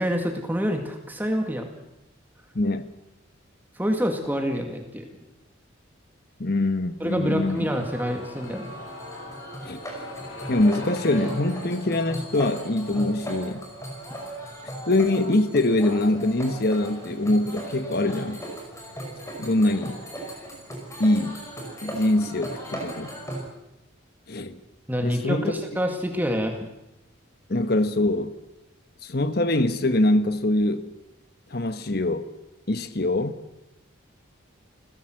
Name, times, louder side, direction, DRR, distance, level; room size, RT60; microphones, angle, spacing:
voice 1, 0.0-1.7 3.8-5.1 7.0-8.8 24.9-26.7, equal, 10° right, 2.1 m, -27 dB
voice 2, 2.5-2.9 6.4-7.7 9.6-9.8 10.5-13.6 14.9-18.4 19.4-20.0 21.0-21.4 21.8-23.1 24.3-24.6 25.0-25.5 27.5-28.3 29.0-30.9 31.5-32.3 32.7-33.3, left 1 dB, 50° left, 1.2 m, -23 dB
sound 1, 7.1-18.9 19.2-19.3, left 2 dB, 70° left, 5.5 m, -43 dB
sound 2, 7.3-23.4, right 1 dB, 15° left, 5.6 m, -38 dB
29.0 x 16.0 x 7.7 m
head